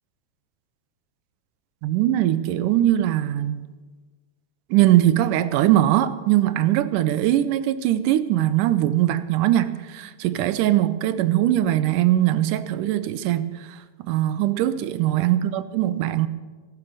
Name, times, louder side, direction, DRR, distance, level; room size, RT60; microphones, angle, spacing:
voice 1, 1.8-3.6 4.7-13.5 14.1-16.3, right 13 dB, 80° right, 2.2 m, -21 dB
14.0 x 11.5 x 6.5 m
omnidirectional pair, 3.8 m